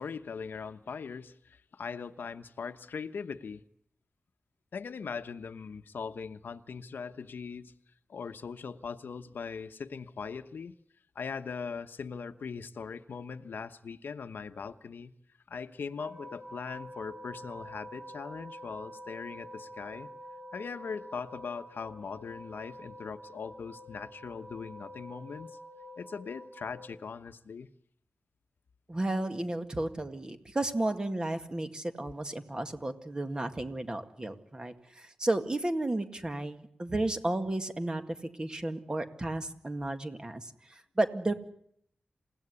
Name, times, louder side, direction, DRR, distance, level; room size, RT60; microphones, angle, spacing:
voice 1, 0.0-3.6 4.7-7.7 8.1-10.7 11.1-15.1 15.5-20.1 20.5-25.5 26.0-27.7, left 5 dB, 85° left, 10 dB, 1.1 m, -40 dB
sound 1, 16.0-26.9, equal, 5° right, 1.9 m, -47 dB
voice 2, 28.9-38.0 38.4-41.3, right 2 dB, 25° right, 7 dB, 2.1 m, -33 dB
28.0 x 17.0 x 9.8 m, 0.70 s
wide cardioid pair, 120°, 3 cm